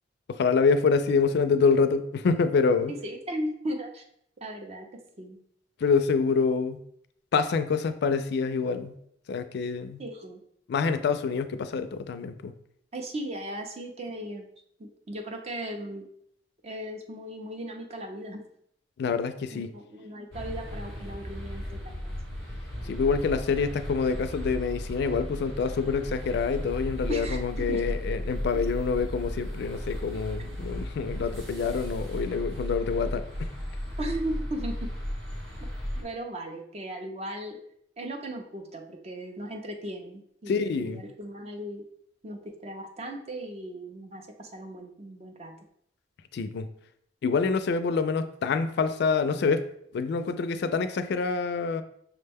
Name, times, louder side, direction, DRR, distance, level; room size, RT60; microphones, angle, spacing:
voice 1, 0.3-2.9 5.8-6.8 7.3-9.0 9.3-10.0 10.7-12.5 19.0-19.7 22.8-33.5 40.5-41.0 46.3-46.7 47.2-49.6 49.9-51.8, left 5 dB, 65° left, 10 dB, 0.3 m, -26 dB
voice 2, 2.9-4.0 4.4-4.9 5.2-5.4 10.0-10.4 12.9-14.5 14.8-16.1 16.6-18.4 19.5-22.2 27.1-27.4 27.7-27.9 28.5-28.6 34.0-34.9 35.6-35.7 36.0-37.6 38.0-41.8 42.2-45.5, right 1 dB, 35° right, 3 dB, 0.5 m, -37 dB
sound 1, 20.3-36.0, equal, 85° right, 1.4 m, -35 dB
5.9 x 2.1 x 3.4 m, 0.70 s
head